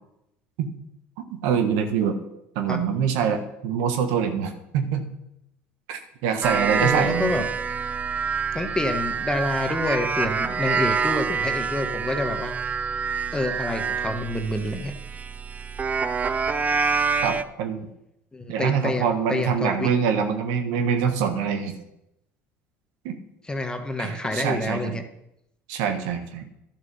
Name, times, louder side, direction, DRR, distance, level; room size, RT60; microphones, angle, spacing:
voice 1, 1.3-2.2 2.5-5.1 5.9-7.4 17.2-17.9 18.5-21.8 23.0-23.2 24.0-25.0 25.7-26.5, right 7 dB, 80° right, 7 dB, 1.3 m, -25 dB
sound 1, 6.4-17.4, right 5 dB, 25° right, 0.5 m, -26 dB
voice 2, 6.8-7.4 8.5-12.7 13.3-14.9 18.3-19.9 23.5-25.0, left 2 dB, 15° left, 6 dB, 1.3 m, -28 dB
11.5 x 6.4 x 5.5 m, 0.81 s
supercardioid pair, 85°, 6 cm